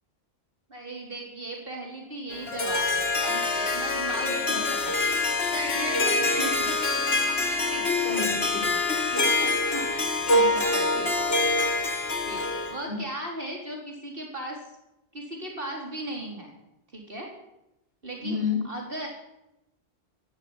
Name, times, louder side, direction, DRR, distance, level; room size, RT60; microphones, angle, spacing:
voice 1, 0.7-4.9 6.4-6.7 9.1-11.3 12.3-14.6 15.1-16.5 16.9-17.3 18.0-18.4 18.6-19.1, right 1 dB, 55° right, 0 dB, 4.3 m, -37 dB
Harp, 2.3-12.8, left 2 dB, 65° left, 2.4 m, -25 dB
voice 2, 4.2-4.8 5.5-7.2 7.5-8.9 10.3-11.1 12.9-13.0 18.2-18.7, left 3 dB, 40° right, -1 dB, 6.4 m, -34 dB
17.0 x 15.0 x 9.9 m, 0.90 s
omnidirectional pair, 1.1 m